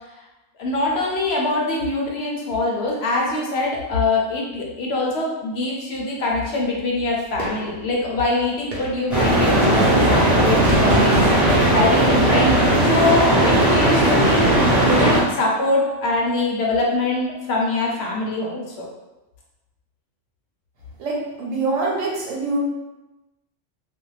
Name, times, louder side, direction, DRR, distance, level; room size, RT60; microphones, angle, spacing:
voice 1, 0.6-12.5 12.9-14.5 14.9-18.8, left 2 dB, 65° left, -2 dB, 0.8 m, -23 dB
sound 1, 7.4-7.9 8.7-9.2 10.6-11.7, right 1 dB, 50° right, 0.7 m, -25 dB
sound 2, 9.1-15.2, right 1 dB, ahead, 0.9 m, -17 dB
voice 2, 21.0-22.6, right 3 dB, 85° right, -3 dB, 1.1 m, -24 dB
2.5 x 2.2 x 3.1 m, 1.0 s
omnidirectional pair, 1.3 m